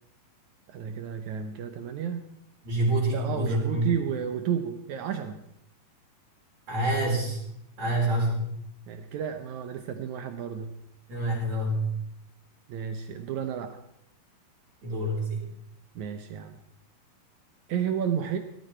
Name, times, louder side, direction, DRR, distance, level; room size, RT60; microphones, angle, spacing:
voice 1, 0.7-2.2 3.1-5.4 8.9-10.7 12.7-13.8 15.9-16.6 17.7-18.4, right 8 dB, 80° right, 7 dB, 1.7 m, -32 dB
voice 2, 2.6-3.9 6.7-7.4 7.8-8.5 11.1-11.9 14.8-15.5, right 1 dB, 45° right, -5 dB, 5.4 m, -27 dB
17.0 x 13.5 x 4.4 m, 0.78 s
omnidirectional pair, 4.5 m